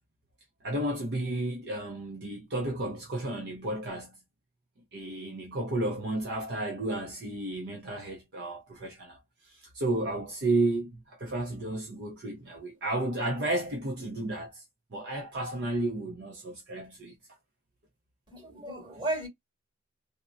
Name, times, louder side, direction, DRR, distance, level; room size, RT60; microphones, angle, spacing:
voice 1, 0.6-4.2 4.9-14.6 14.9-17.2, right 2 dB, 55° right, 0.7 m, -32 dB
voice 2, 18.3-19.3, right 2 dB, 20° right, 2.3 m, -34 dB
3.5 x 2.2 x 2.5 m
head